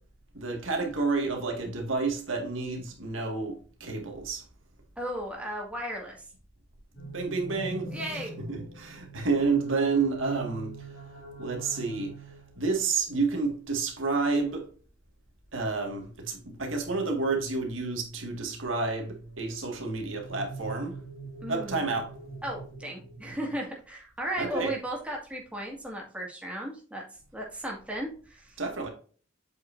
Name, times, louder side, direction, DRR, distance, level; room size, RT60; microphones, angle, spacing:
voice 1, 0.3-4.4 7.1-7.9 8.5-10.7 11.4-12.1 12.6-14.7 15.5-20.9 21.5-22.1 24.4-24.7 28.6-28.9, right 4 dB, 80° right, 1.9 m, -30 dB
voice 2, 5.0-6.2 7.9-8.3 21.4-21.9 22.4-27.0 27.3-28.5, right 1 dB, 5° right, 2.0 m, -35 dB
sound 1, 7.0-12.6 15.8-23.5, right 3 dB, 85° left, 2.7 m, -43 dB
7.9 x 5.5 x 2.6 m
head